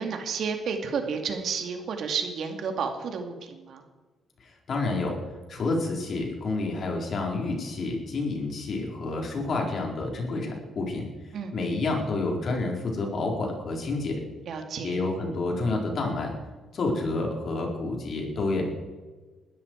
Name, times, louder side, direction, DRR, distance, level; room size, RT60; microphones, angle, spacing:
voice 1, 0.0-3.8 11.3-11.6 14.5-15.0, right 5 dB, 65° right, 4 dB, 2.4 m, -31 dB
voice 2, 4.4-5.2 5.5-11.1 11.5-14.2 14.8-16.3 16.7-18.6, left 3 dB, 55° left, 1 dB, 4.4 m, -29 dB
20.0 x 13.0 x 4.7 m, 1.3 s
cardioid pair, 90°, 0 cm